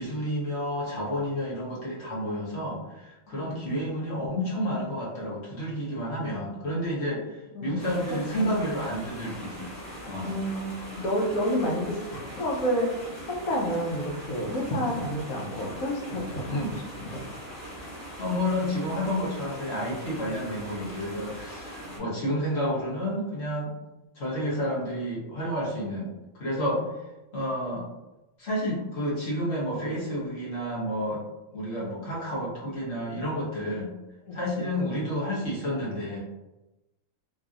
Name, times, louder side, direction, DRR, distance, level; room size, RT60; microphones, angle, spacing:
voice 1, 0.0-9.7 10.0-10.4 16.5-16.7 18.2-23.7 24.1-26.1 26.4-26.8 27.3-27.9 28.4-31.2 31.5-33.9 34.3-36.2, equal, 55° left, -6 dB, 1.2 m, -30 dB
voice 2, 3.3-3.8 7.5-8.5 10.2-11.8 12.1-12.9 13.3-17.2 21.8-21.9 22.2-22.3 26.7-26.8 34.3-34.7, equal, 90° left, -2 dB, 1.2 m, -30 dB
sound 1, 7.8-22.0, equal, 15° left, 1.0 m, -41 dB
3.0 x 2.7 x 2.4 m, 0.98 s
omnidirectional pair, 1.4 m